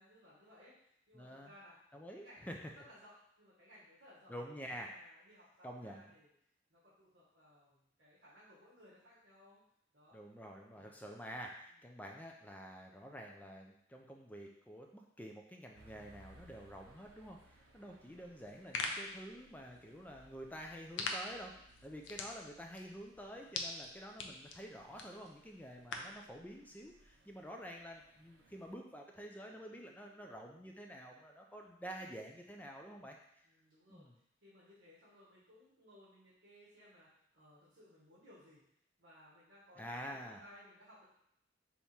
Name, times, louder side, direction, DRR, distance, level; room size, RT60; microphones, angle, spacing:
voice 1, 0.0-1.8 2.1-4.3 4.7-6.3 6.7-9.6 9.9-10.2 10.7-11.1 11.7-11.8 18.0-18.6 25.7-26.3 33.4-38.6 39.0-41.0, equal, 60° right, -9 dB, 1.3 m, -62 dB
voice 2, 1.1-1.5 1.9-2.6 4.3-4.9 5.6-6.1 10.1-14.9 15.2-33.2 33.9-34.1 39.8-40.4, equal, 10° left, 1 dB, 0.4 m, -49 dB
sound 1, 15.7-28.7, right 1 dB, 90° right, 0.6 m, -65 dB
sound 2, 18.4-26.2, left 3 dB, 75° left, 0.5 m, -45 dB
3.5 x 2.9 x 4.2 m, 0.75 s
head